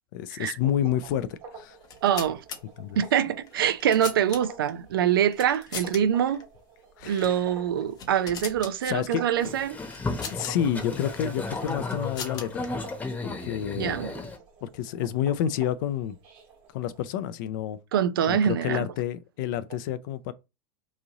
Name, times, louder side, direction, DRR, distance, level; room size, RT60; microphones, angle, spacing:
voice 1, 0.1-1.8 2.8-3.0 7.0-7.3 8.8-9.2 10.3-12.7 13.4-14.0 14.6-16.2 16.7-17.8 18.3-20.3, left 10 dB, 65° left, 0.4 m, -29 dB
sound 1, 0.7-17.0, right 4 dB, 45° right, 1.4 m, -49 dB
sound 2, 1.8-2.6 3.5-4.7 5.3-6.0 6.3-6.4 7.1-7.4 7.8-8.7 9.9-10.5 11.5-12.7, left 6 dB, 35° left, 0.8 m, -39 dB
voice 2, 2.0-2.4 3.0-6.4 7.0-9.7 13.8-14.2 17.9-18.9, right 9 dB, 85° right, 0.4 m, -24 dB
Boat Water vehicle, 9.4-14.4, left 3 dB, 15° left, 0.9 m, -34 dB
3.0 x 2.6 x 3.7 m
hypercardioid pair, 115°, 12 cm